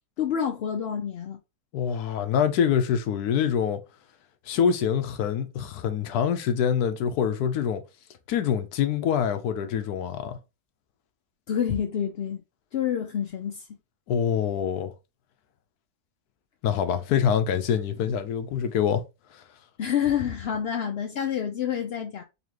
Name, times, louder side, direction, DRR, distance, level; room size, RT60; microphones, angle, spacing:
voice 1, 0.2-1.4 11.5-12.4 12.7-13.6 19.8-22.2, left 8 dB, 65° left, 0.6 m, -28 dB
voice 2, 1.7-3.8 4.5-7.8 8.3-10.4 14.1-14.9 16.6-19.0 19.3-19.4, left 8 dB, 85° left, 1.2 m, -25 dB
4.1 x 2.9 x 2.9 m
omnidirectional pair, 1.6 m